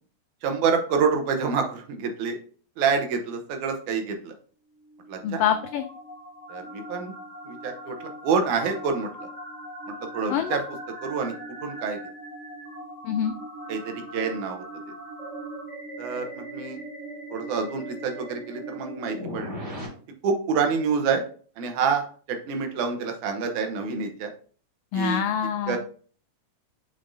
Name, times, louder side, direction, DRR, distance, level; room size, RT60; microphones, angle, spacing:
voice 1, 0.4-2.4 2.8-4.3 5.1-5.4 6.5-7.1 7.5-9.3 10.1-10.6 11.0-11.4 11.6-12.0 13.7-14.6 16.0-16.8 17.3-19.5 20.2-21.2 21.6-24.3 24.9-25.2 25.7-25.8, right 5 dB, 85° right, 5 dB, 2.4 m, -27 dB
sound 1, 4.8-19.9, right 1 dB, 25° right, 3.3 m, -40 dB
voice 2, 5.2-5.8 10.3-10.6 13.0-13.3 24.9-25.8, left 8 dB, 85° left, 7 dB, 1.4 m, -25 dB
7.1 x 5.2 x 2.7 m, 0.43 s
omnidirectional pair, 3.3 m